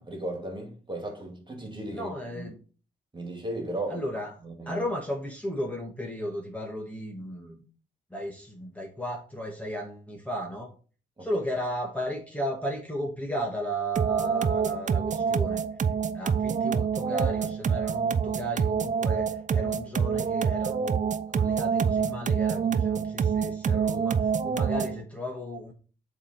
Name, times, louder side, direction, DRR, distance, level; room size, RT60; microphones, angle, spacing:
voice 1, 0.0-2.5 3.1-4.1 4.4-4.9 11.2-11.3, right 1 dB, 25° right, 2.5 m, -36 dB
voice 2, 1.9-2.6 3.9-4.3 4.7-7.6 8.1-10.7 11.2-15.6 16.1-25.7, equal, 5° left, 1.8 m, -34 dB
sound 1, 14.0-25.0, right 6 dB, 45° right, 0.5 m, -26 dB
7.1 x 3.6 x 4.3 m
cardioid pair, 55°, 18 cm